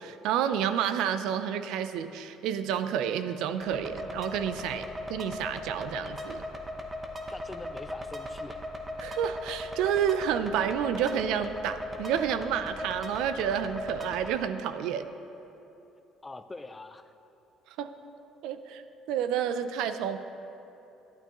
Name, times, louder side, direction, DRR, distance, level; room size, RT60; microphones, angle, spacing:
voice 1, 0.0-6.4 9.0-15.1 17.8-17.9 18.4-18.8 19.1-20.2, right 8 dB, 80° right, 11 dB, 0.4 m, -30 dB
sound 1, 3.6-14.3, left 1 dB, 15° right, 0.8 m, -38 dB
voice 2, 7.3-8.6 16.2-17.0, left 2 dB, 15° left, 10 dB, 0.3 m, -43 dB
11.5 x 9.0 x 3.0 m, 2.9 s
cardioid pair, 140°, 0 cm